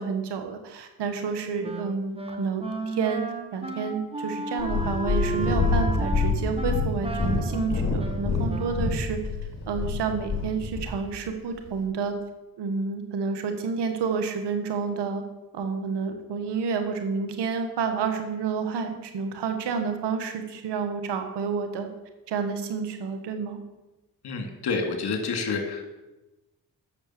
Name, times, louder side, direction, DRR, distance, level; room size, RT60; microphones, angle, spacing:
voice 1, 0.0-3.2 3.5-9.2 9.7-12.1 12.6-15.2 15.5-21.9 22.3-23.6, right 5 dB, 85° right, 6 dB, 1.4 m, -29 dB
Wind instrument woodwind instrument, 1.6-9.1, right 2 dB, 15° right, 1.6 m, -34 dB
Purr, 4.6-10.9 11.7-11.8, left 4 dB, 40° left, 3.7 m, -26 dB
voice 2, 24.2-25.9, left 4 dB, 70° left, 4 dB, 2.1 m, -28 dB
8.7 x 6.4 x 7.7 m, 1.0 s
supercardioid pair, 50°, 40 cm